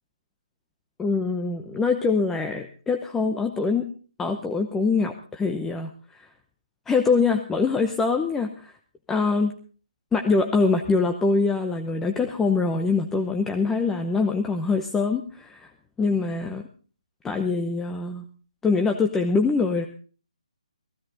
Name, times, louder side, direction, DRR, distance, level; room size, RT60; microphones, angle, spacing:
voice 1, 1.0-3.9 4.2-6.3 6.9-8.7 9.1-9.5 10.1-15.7 16.0-16.6 17.2-18.2 18.6-19.9, left 4 dB, 10° left, 4 dB, 0.8 m, -24 dB
15.5 x 15.5 x 3.9 m, 0.38 s
figure-of-eight pair, 150°, 4 cm